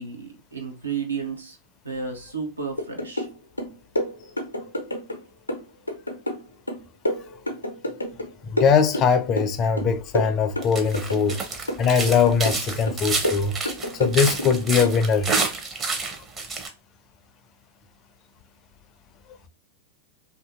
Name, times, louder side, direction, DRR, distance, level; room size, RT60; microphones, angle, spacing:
voice 1, 0.0-1.6 1.8-3.3, right 5 dB, 80° right, 0.6 m, -32 dB
sound 1, 2.8-3.3 3.6-5.2 5.5-8.3 8.6-9.5 9.8-11.4 11.7-12.6 12.9-14.5 14.8-15.0, left 1 dB, 85° left, 0.5 m, -29 dB
voice 2, 8.5-11.4 11.8-13.6 14.0-15.3, left 6 dB, 35° left, 0.4 m, -21 dB
sound 2, 10.6-16.7, right 4 dB, 25° right, 0.6 m, -28 dB
2.6 x 2.5 x 2.4 m
figure-of-eight pair, 90°, 0 cm